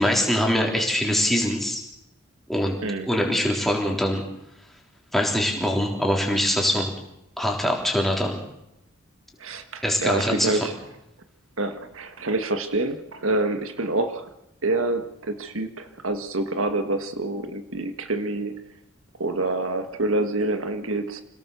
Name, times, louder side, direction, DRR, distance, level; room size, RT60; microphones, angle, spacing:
voice 1, 0.0-1.8 2.5-2.8 3.1-4.2 5.1-6.9 7.4-8.4 9.8-10.6, equal, ahead, 0 dB, 3.7 m, -23 dB
voice 2, 9.4-10.7 11.6-14.3 14.6-18.6 19.2-21.2, right 2 dB, 70° right, 8 dB, 1.6 m, -27 dB
27.0 x 17.5 x 6.9 m, 0.86 s
head